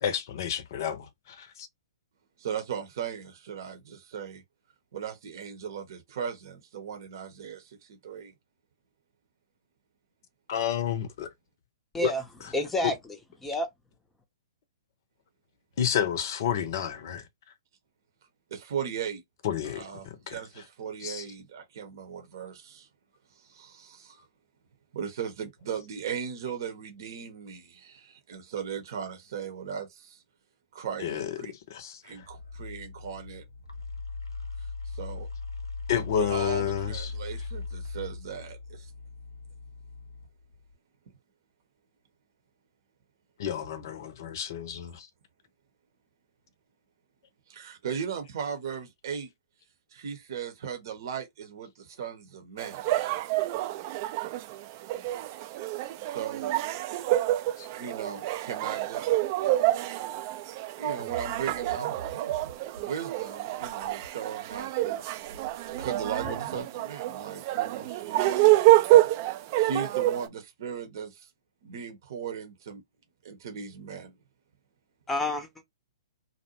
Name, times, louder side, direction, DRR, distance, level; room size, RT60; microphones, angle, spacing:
voice 1, 0.0-1.7 10.5-11.3 12.0-12.1 15.8-17.2 19.4-20.4 21.0-21.2 31.0-31.3 31.7-32.0 35.9-37.1 43.4-45.1 57.6-57.7, left 9 dB, 50° left, 0.6 m, -30 dB
voice 2, 2.4-4.4 4.9-8.3 18.5-19.2 19.6-22.9 23.4-24.2 24.9-30.2 30.7-31.1 31.4-31.5 32.0-33.4 34.9-35.3 36.2-38.9 47.5-49.3 49.9-52.9 56.1-56.5 57.7-59.1 60.8-61.9 62.8-65.1 65.8-68.4 69.6-71.3 71.6-72.8 73.2-74.1, right 7 dB, 55° right, 0.8 m, -37 dB
voice 3, 11.9-12.2 12.5-13.7 66.2-66.3 75.1-75.6, left 1 dB, 10° left, 0.6 m, -29 dB
sound 1, 32.1-40.8, left 4 dB, 85° left, 0.8 m, -39 dB
sound 2, 52.6-70.3, right 16 dB, 40° right, 0.4 m, -27 dB
sound 3, 61.0-62.9 63.2-63.3 63.6-64.1 64.5-66.6, right 4 dB, 80° right, 0.9 m, -45 dB
2.6 x 2.1 x 2.8 m
figure-of-eight pair, 120°, 2 cm